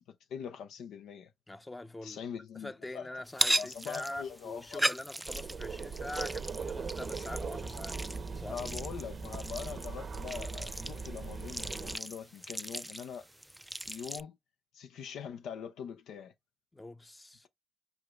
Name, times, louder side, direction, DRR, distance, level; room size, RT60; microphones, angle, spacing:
voice 1, 0.1-1.3 2.0-3.1 3.6-4.9 8.5-13.3 13.9-14.4 14.7-16.3, left 7 dB, 85° left, 0.4 m, -42 dB
voice 2, 1.5-8.0 8.3-8.6 16.7-17.5, left 1 dB, 25° left, 0.7 m, -44 dB
sound 1, 3.3-14.2, right 1 dB, 10° right, 0.3 m, -38 dB
sound 2, 5.3-12.0, right 5 dB, 65° right, 0.7 m, -40 dB
5.0 x 4.7 x 2.3 m
supercardioid pair, 45°, 0 cm